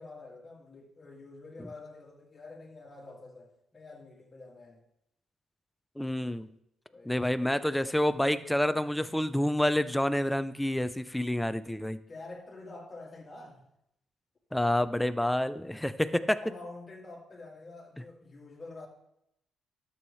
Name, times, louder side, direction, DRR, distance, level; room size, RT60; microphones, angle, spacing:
voice 1, 0.0-4.8 6.9-7.2 12.1-13.7 16.4-18.9, left 2 dB, 25° left, -3 dB, 2.1 m, -47 dB
voice 2, 6.0-6.5 7.1-12.0 14.5-16.4, left 1 dB, 5° left, 12 dB, 0.5 m, -28 dB
11.5 x 7.1 x 3.2 m, 0.79 s
cardioid pair, 90°, 0 cm